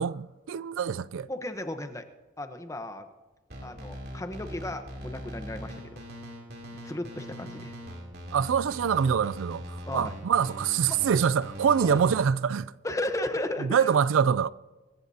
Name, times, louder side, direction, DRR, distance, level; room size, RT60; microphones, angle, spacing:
voice 1, 0.0-1.3 8.3-12.7 13.6-14.5, right 7 dB, 75° right, 0.4 m, -25 dB
voice 2, 1.3-2.0 2.4-3.1 3.6-6.1 6.7-7.7 9.9-10.1 10.9-11.0 11.8-12.0 12.8-13.9, left 1 dB, 15° left, 0.9 m, -35 dB
sound 1, 3.5-12.2, equal, 50° right, 3.0 m, -41 dB
25.0 x 14.5 x 2.8 m
head